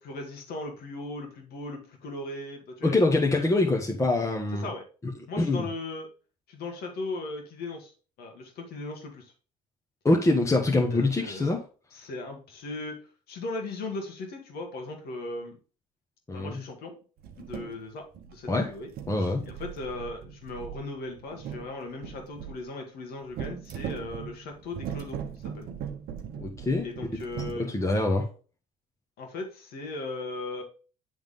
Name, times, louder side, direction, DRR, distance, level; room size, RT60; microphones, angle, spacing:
voice 1, 0.0-3.0 3.3-3.6 4.5-4.8 5.3-6.1 6.5-9.3 10.9-11.6 11.9-13.0 13.3-15.6 16.3-17.0 17.4-18.9 19.2-25.7 26.8-27.7 29.2-30.6, left 2 dB, 65° left, 3 dB, 2.0 m, -38 dB
voice 2, 2.8-4.7 5.4-5.7 10.0-11.6 16.3-16.6 18.5-18.7 19.1-19.4 26.4-26.9 27.4-28.3, left 2 dB, 15° left, 1 dB, 1.1 m, -24 dB
sound 1, 17.2-17.8 18.1-18.6 18.9-22.6 23.3-27.6, right 8 dB, 65° right, 1.0 m, -39 dB
9.3 x 3.6 x 3.6 m, 0.37 s
supercardioid pair, 80°, 17 cm